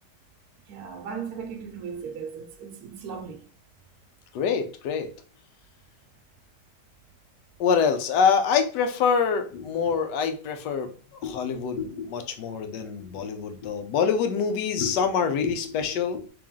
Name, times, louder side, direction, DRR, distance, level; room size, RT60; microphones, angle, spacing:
voice 1, 0.7-3.4, right 6 dB, 70° right, 1.0 m, -37 dB
voice 2, 4.3-5.1 7.6-10.9 11.2-16.3, left 6 dB, 85° left, 1.3 m, -25 dB
3.4 x 3.0 x 3.5 m
omnidirectional pair, 1.8 m